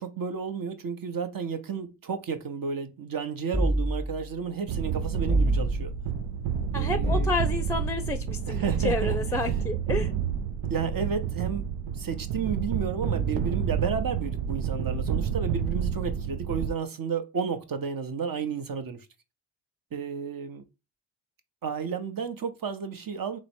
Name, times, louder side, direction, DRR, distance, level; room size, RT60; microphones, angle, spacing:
voice 1, 0.0-5.9 6.7-7.4 8.5-9.2 10.7-19.1 19.9-20.6 21.6-23.4, right 6 dB, 50° right, 0.9 m, -32 dB
sound 1, 3.5-4.3 5.3-6.0 7.0-7.8, right 1 dB, 15° right, 0.9 m, -26 dB
sound 2, 4.7-16.7, right 7 dB, 80° right, 0.6 m, -29 dB
voice 2, 6.7-10.1, left 2 dB, 5° left, 0.6 m, -30 dB
3.1 x 3.0 x 4.4 m
supercardioid pair, 40°, 45 cm